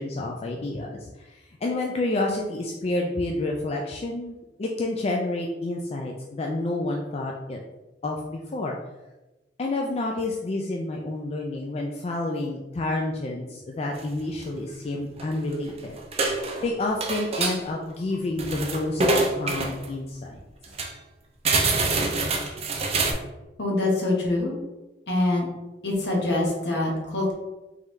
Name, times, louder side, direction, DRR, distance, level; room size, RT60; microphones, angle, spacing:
voice 1, 0.0-7.6 8.0-8.8 9.6-16.0 16.6-20.4, left 2 dB, 35° left, 0 dB, 0.3 m, -29 dB
sound 1, 14.0-14.1 14.3-14.5 15.1-15.7 16.0-16.7 17.0-17.6 18.1-19.9 20.3-20.4 20.6-20.9 21.4-23.1, right 3 dB, 35° right, 0.5 m, -25 dB
voice 2, 23.6-24.6 25.1-25.5 25.8-27.3, left 2 dB, 70° left, -2 dB, 1.2 m, -24 dB
3.7 x 3.3 x 3.1 m, 1.1 s
head